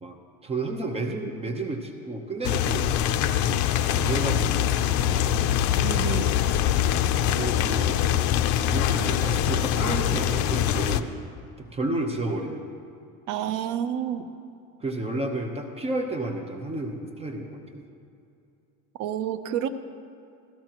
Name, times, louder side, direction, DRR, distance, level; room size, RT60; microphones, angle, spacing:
voice 1, 0.0-3.1 3.4-5.5 7.4-8.1 8.6-11.1 11.6-12.7 14.8-17.8, right 2 dB, 20° right, 3 dB, 0.9 m, -31 dB
sound 1, 2.4-11.0, left 10 dB, 60° left, 0.6 m, -23 dB
voice 2, 5.8-6.3 13.3-14.3 19.0-19.7, right 10 dB, 60° right, 10 dB, 0.8 m, -29 dB
16.5 x 15.0 x 3.0 m, 2.6 s
cardioid pair, 140°, 34 cm